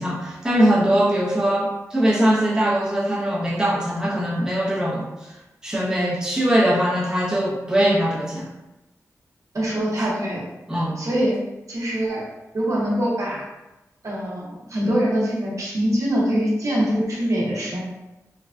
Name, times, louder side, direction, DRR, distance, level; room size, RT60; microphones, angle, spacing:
voice 1, 0.0-5.4 5.6-8.5 10.0-10.1 10.7-11.0, right 1 dB, 10° right, -5 dB, 0.7 m, -21 dB
voice 2, 9.5-10.4 11.0-11.3 11.7-12.2 12.5-13.5 14.0-17.8, equal, 60° right, -5 dB, 0.8 m, -23 dB
3.2 x 2.2 x 2.4 m, 1.0 s
wide cardioid pair, 80°, 6 cm